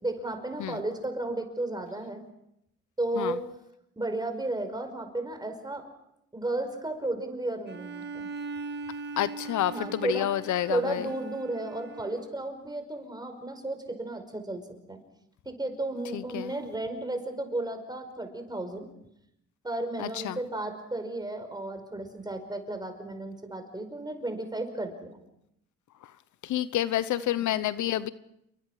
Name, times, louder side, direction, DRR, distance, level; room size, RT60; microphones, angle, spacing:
voice 1, 0.0-2.2 3.0-3.5 4.0-5.9 6.3-8.3 9.7-10.3 10.7-14.6 14.9-15.0 15.5-18.9 19.6-25.2 27.2-27.4, right 2 dB, 15° right, 7 dB, 5.3 m, -33 dB
Bowed string instrument, 7.7-12.4, right 3 dB, 35° right, 1.8 m, -40 dB
voice 2, 9.2-11.1 16.1-16.5 20.0-20.4 26.4-28.1, left 12 dB, 75° left, 15 dB, 0.9 m, -29 dB
29.0 x 23.5 x 5.0 m, 0.79 s
cardioid pair, 90°, 30 cm